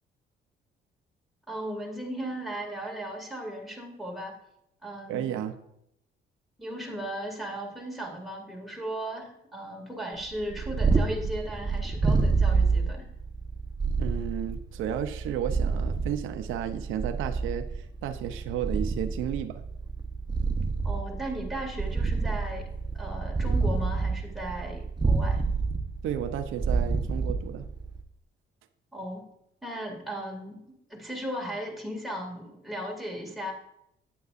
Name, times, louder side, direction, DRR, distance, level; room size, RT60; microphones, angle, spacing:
voice 1, 1.5-4.4 4.8-5.2 6.6-13.1 20.8-22.7 22.9-25.4 28.9-29.3 29.6-33.5, right 1 dB, ahead, -1 dB, 2.3 m, -36 dB
voice 2, 5.1-5.6 14.0-19.6 26.0-27.7, right 10 dB, 90° right, 9 dB, 0.6 m, -33 dB
Purr, 10.3-28.0, right 4 dB, 20° right, 1.0 m, -28 dB
9.3 x 9.1 x 2.5 m, 0.79 s
cardioid pair, 90°, 20 cm